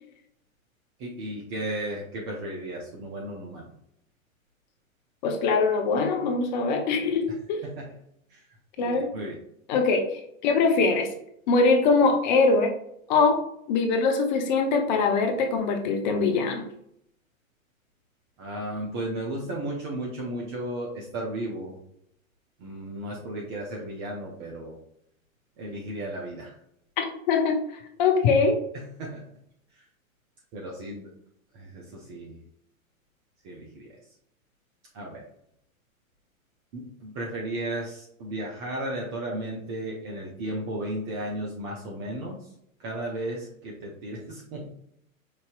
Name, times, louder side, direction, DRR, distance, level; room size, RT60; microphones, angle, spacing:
voice 1, 1.0-3.6 7.6-7.9 8.3-8.4 8.8-9.3 18.4-21.8 22.6-24.8 25.6-26.5 28.7-29.3 30.5-31.1 31.5-32.4 33.4-33.9 34.9-35.2 36.7-42.4 42.8-44.7, right 1 dB, 20° right, -2 dB, 0.4 m, -34 dB
voice 2, 5.2-7.6 8.8-9.1 9.7-11.1 11.5-12.7 13.1-13.4 13.7-16.6 27.0-28.6, left 4 dB, 35° left, 4 dB, 0.6 m, -23 dB
4.6 x 2.6 x 2.3 m, 0.73 s
hypercardioid pair, 115°, 42 cm